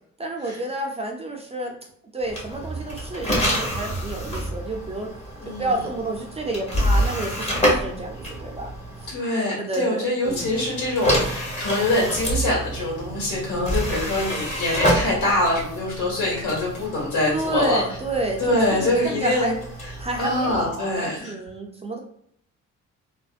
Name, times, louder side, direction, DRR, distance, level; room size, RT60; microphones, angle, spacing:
voice 1, 0.2-1.8 2.1-5.1 5.6-8.7 9.6-10.5 13.5-13.9 17.3-19.5 20.0-22.0, right 2 dB, 20° right, 1 dB, 0.4 m, -30 dB
sound 1, 2.2-9.2 10.2-20.8, equal, 20° left, 0.9 m, -28 dB
voice 2, 5.4-5.7 9.1-17.8 18.4-19.5 20.2-21.3, left 1 dB, 80° left, -3 dB, 1.4 m, -24 dB
2.5 x 2.0 x 2.4 m, 0.67 s
cardioid pair, 90°, 30 cm